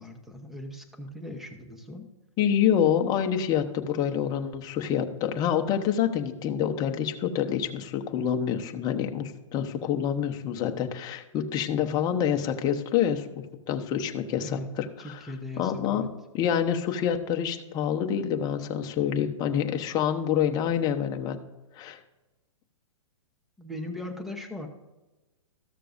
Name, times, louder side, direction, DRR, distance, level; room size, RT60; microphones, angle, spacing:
voice 1, 0.0-2.1 14.4-14.7 15.0-16.1 23.6-24.7, left 1 dB, ahead, 5 dB, 0.9 m, -39 dB
voice 2, 2.4-15.2 15.6-16.1 16.3-21.4 21.7-22.0, left 9 dB, 25° left, 5 dB, 0.8 m, -27 dB
14.0 x 6.6 x 2.6 m, 1.1 s
hypercardioid pair, 135°, 17 cm